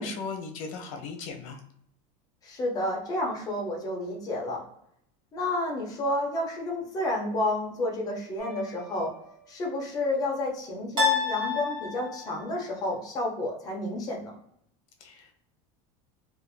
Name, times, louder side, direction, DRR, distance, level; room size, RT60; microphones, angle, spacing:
voice 1, 0.0-1.6 15.0-15.5, left 5 dB, 85° left, 4 dB, 0.8 m, -38 dB
voice 2, 2.4-4.6 5.3-9.2 9.5-14.4, left 1 dB, 20° left, -1 dB, 0.7 m, -30 dB
sound 1, 8.4-9.1 11.0-12.4, left 5 dB, 25° right, 1.3 m, -29 dB
2.6 x 2.5 x 2.6 m, 0.71 s
supercardioid pair, 165°, 17 cm